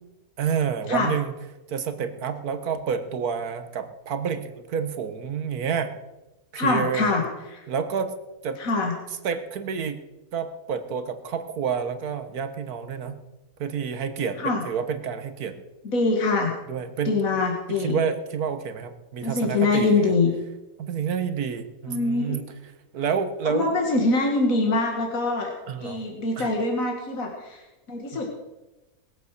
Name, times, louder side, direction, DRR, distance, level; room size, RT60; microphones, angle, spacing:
voice 1, 0.4-1.3 1.7-5.9 6.5-7.1 7.7-8.1 8.4-8.6 9.2-10.0 10.3-13.2 13.6-15.6 16.7-17.2 17.7-20.1 20.8-22.4 22.9-23.7 25.7-26.0 26.4-26.5 28.1-28.2, right 7 dB, 85° right, 10 dB, 1.6 m, -29 dB
voice 2, 6.6-7.6 8.6-8.9 14.4-14.6 15.8-16.5 17.1-18.0 19.2-20.3 21.9-22.4 23.5-25.5 25.8-27.6 27.9-28.3, left 3 dB, 65° left, 1 dB, 2.3 m, -24 dB
20.5 x 8.1 x 6.5 m, 1.1 s
omnidirectional pair, 1.6 m